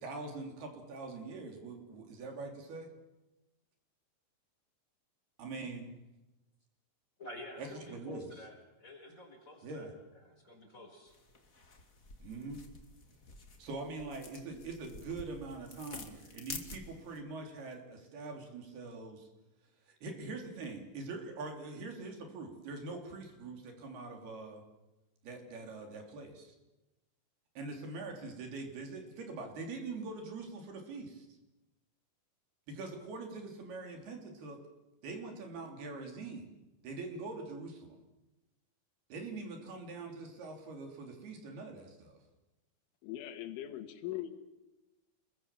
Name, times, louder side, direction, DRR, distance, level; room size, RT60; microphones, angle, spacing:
voice 1, 0.0-2.9 5.4-5.9 7.6-8.4 9.6-9.9 12.2-12.6 13.6-19.3 19.9-24.6 25.2-26.5 27.5-31.3 32.7-34.6 35.0-36.5 36.8-38.0 39.1-42.2, right 3 dB, 55° right, 3 dB, 5.0 m, -43 dB
voice 2, 7.2-9.9 10.1-11.2, left 1 dB, 15° left, 2 dB, 5.2 m, -50 dB
sound 1, 11.1-17.2, left 3 dB, 35° left, 1.3 m, -49 dB
voice 3, 43.0-44.3, left 13 dB, 80° left, 7 dB, 4.1 m, -40 dB
28.5 x 21.5 x 7.4 m, 1.0 s
omnidirectional pair, 5.5 m